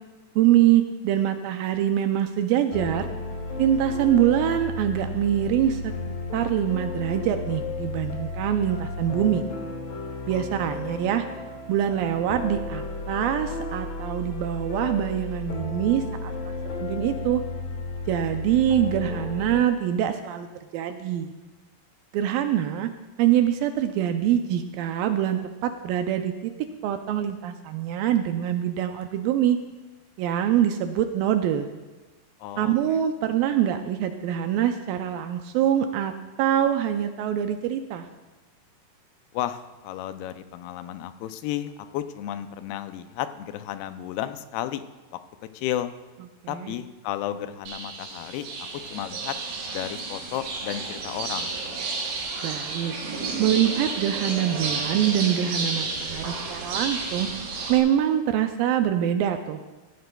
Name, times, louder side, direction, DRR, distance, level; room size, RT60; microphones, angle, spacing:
voice 1, 0.4-3.1 3.6-5.9 6.3-9.4 10.3-11.3 11.7-16.3 16.8-17.4 18.1-20.5 20.7-21.3 22.1-22.9 23.2-26.5 26.8-29.6 30.2-31.7 32.6-38.1 46.4-46.7 52.4-52.9 53.4-57.3 57.7-59.6, right 10 dB, 80° right, 7 dB, 2.1 m, -24 dB
sound 1, 2.7-19.6, left 3 dB, 60° left, 2.0 m, -33 dB
voice 2, 10.3-10.7 32.4-33.0 39.3-44.8 45.5-45.9 46.5-48.5 48.9-49.3 49.7-51.5, left 12 dB, 85° left, 10 dB, 2.5 m, -33 dB
sound 2, 47.7-57.8, right 3 dB, 65° right, 2.6 m, -31 dB
16.0 x 13.0 x 2.3 m, 1.2 s
omnidirectional pair, 4.4 m